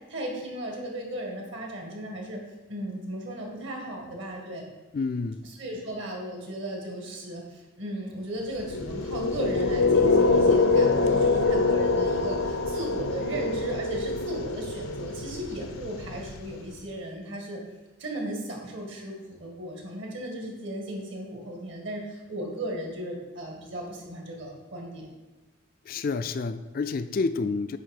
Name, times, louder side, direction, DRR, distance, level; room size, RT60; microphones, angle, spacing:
voice 1, 0.1-2.4 2.7-4.6 5.6-17.6 18.0-25.1, right 1 dB, 60° right, 0 dB, 2.0 m, -36 dB
voice 2, 4.9-5.4 25.9-27.8, left 4 dB, 45° left, 10 dB, 0.3 m, -29 dB
sound 1, 8.6-16.7, left 3 dB, 90° left, 0.7 m, -24 dB
9.2 x 3.5 x 6.6 m, 1.1 s
head